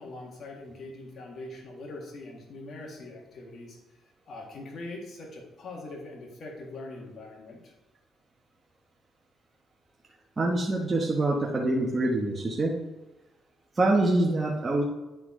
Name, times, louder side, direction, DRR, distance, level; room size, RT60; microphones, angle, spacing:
voice 1, 0.0-3.8 4.3-7.7, left 2 dB, 55° left, -1 dB, 1.7 m, -42 dB
voice 2, 10.4-12.7 13.7-14.8, right 2 dB, 30° right, -3 dB, 1.1 m, -25 dB
9.7 x 4.4 x 3.7 m, 1.0 s
cardioid pair, 90°, 0 cm